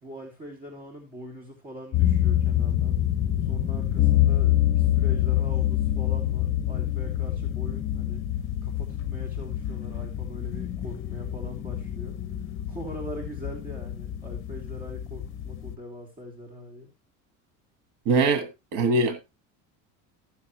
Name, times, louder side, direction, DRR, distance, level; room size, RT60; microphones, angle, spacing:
voice 1, 0.0-3.0 3.4-8.2 8.6-12.2 12.7-16.9, equal, 25° right, 3.0 m, -42 dB
sound 1, 1.9-15.8, left 12 dB, 35° left, 0.9 m, -26 dB
voice 2, 18.1-19.3, right 3 dB, 75° right, 1.7 m, -23 dB
15.0 x 7.2 x 3.0 m
cardioid pair, 135°, 34 cm